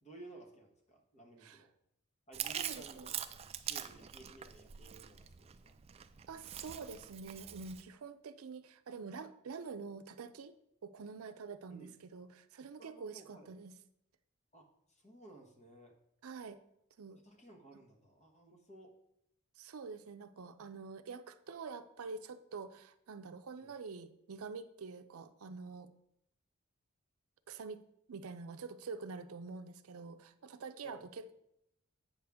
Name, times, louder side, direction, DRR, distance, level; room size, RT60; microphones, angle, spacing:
voice 1, 0.0-1.7 2.3-5.7 11.7-11.9 12.8-13.5 14.5-15.9 17.2-18.9 21.5-21.6 23.6-23.7 30.8-31.1, right 2 dB, 30° left, 2 dB, 1.2 m, -56 dB
Chewing mastication, 2.3-7.8, right 10 dB, 30° right, 0.3 m, -44 dB
voice 2, 2.6-3.1 6.3-10.6 10.8-13.7 16.2-16.6 17.0-17.2 19.6-25.9 27.5-27.8 28.1-31.3, right 4 dB, 85° right, 10 dB, 0.5 m, -46 dB
8.6 x 6.4 x 3.5 m, 0.77 s
head